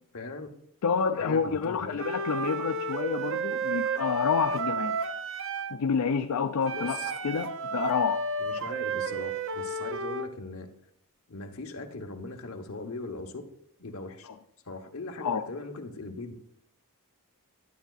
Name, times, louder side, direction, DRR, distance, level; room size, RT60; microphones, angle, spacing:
voice 1, 0.1-0.5 1.2-2.0 6.7-7.1 8.4-10.7 11.3-13.4 13.8-14.3 14.7-16.3, left 2 dB, 65° left, 1.0 m, -39 dB
voice 2, 0.8-5.1 5.7-8.2 15.2-15.4, left 6 dB, 80° left, 0.4 m, -29 dB
Wind instrument woodwind instrument, 2.0-5.8 6.6-10.3, right 3 dB, 60° right, 0.6 m, -32 dB
11.5 x 9.0 x 2.4 m
head